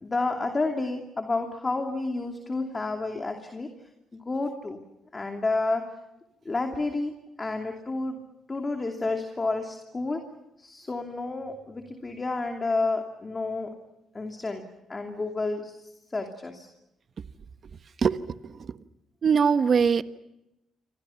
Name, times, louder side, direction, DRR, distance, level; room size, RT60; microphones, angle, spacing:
voice 1, 0.0-3.7 4.1-4.8 5.1-5.8 6.4-8.2 8.5-10.2 10.6-13.7 14.1-14.6 14.9-15.7 16.1-16.7, left 3 dB, 25° left, 4 dB, 2.8 m, -30 dB
voice 2, 19.2-20.0, right 6 dB, 50° right, 12 dB, 1.2 m, -21 dB
29.5 x 25.0 x 5.8 m, 0.89 s
cardioid pair, 90°, 0 cm